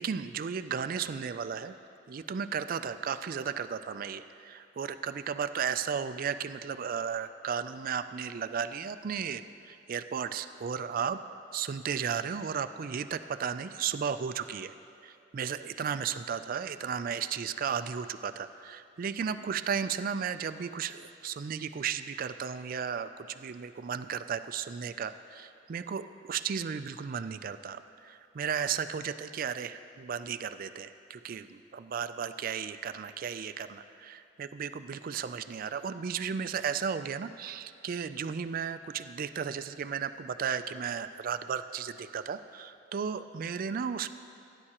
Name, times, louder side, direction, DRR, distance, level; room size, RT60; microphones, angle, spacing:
voice 1, 0.0-1.7 2.1-11.2 11.5-14.7 15.0-44.1, right 7 dB, 50° right, 11 dB, 0.4 m, -34 dB
17.5 x 9.8 x 2.9 m, 2.5 s
head